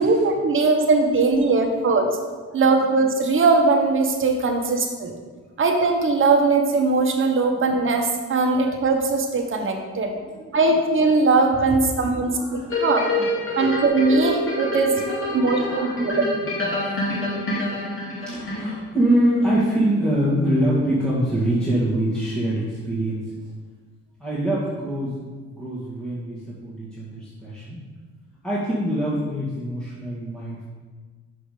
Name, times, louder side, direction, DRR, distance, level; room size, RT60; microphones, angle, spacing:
voice 1, 0.0-2.1 2.5-5.1 5.6-10.1 10.5-13.1 13.6-15.0 15.3-16.2, right 3 dB, 45° right, 3 dB, 1.2 m, -20 dB
voice 2, 2.2-2.9 4.7-4.8 10.0-10.6 11.9-13.8 14.8-17.0 17.6-17.7 18.1-23.4 24.2-25.2 25.5-27.8 28.4-30.6, right 1 dB, 5° left, -10 dB, 1.8 m, -25 dB
sound 1, 12.7-19.0 19.5-19.6, left 1 dB, 45° left, 2.1 m, -27 dB
6.0 x 5.1 x 4.9 m, 1.4 s
cardioid pair, 90°, 30 cm